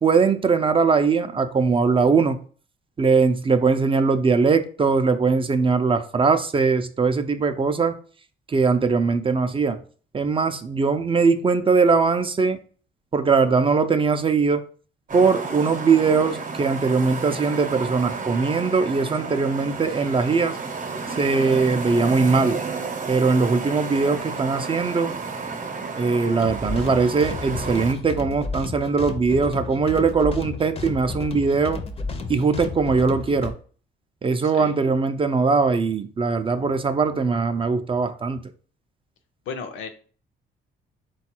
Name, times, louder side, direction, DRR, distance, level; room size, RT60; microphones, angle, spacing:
voice 1, 0.0-2.4 3.0-8.0 8.5-9.8 10.1-12.6 13.1-14.6 15.1-20.6 21.2-22.6 23.1-25.1 26.0-31.8 32.3-33.5 34.2-38.4, right 4 dB, 25° right, 0.4 m, -21 dB
sound 1, 15.1-27.9, right 4 dB, 40° right, 0.8 m, -32 dB
sound 2, 26.4-33.5, left 3 dB, 30° left, 0.5 m, -32 dB
voice 2, 34.4-34.8 39.5-39.9, left 5 dB, 80° left, 0.7 m, -34 dB
3.9 x 2.3 x 4.3 m
cardioid pair, 90°, 20 cm